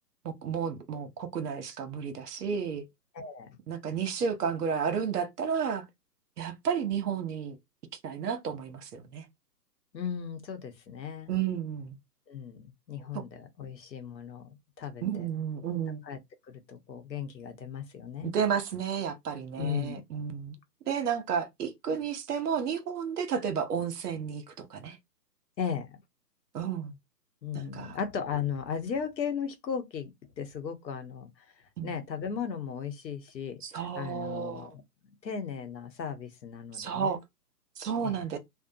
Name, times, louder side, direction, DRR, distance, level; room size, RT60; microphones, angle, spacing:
voice 1, 0.2-2.8 3.7-5.8 6.4-7.6 8.0-9.3 11.3-12.0 13.1-13.2 15.0-16.0 18.2-20.5 20.9-25.0 26.5-26.9 27.5-28.0 31.8-32.0 33.6-34.7 36.7-37.2 37.8-38.4, right 7 dB, 65° right, 0.8 m, -32 dB
voice 2, 3.1-3.5 9.9-11.3 12.3-14.5 14.8-15.3 16.1-16.2 16.5-18.3 19.6-20.0 25.6-26.0 27.4-30.1 30.4-31.3 31.8-34.8 35.2-37.2 38.0-38.2, left 7 dB, 85° left, 0.9 m, -36 dB
2.7 x 2.1 x 2.7 m
hypercardioid pair, 150°, 50 cm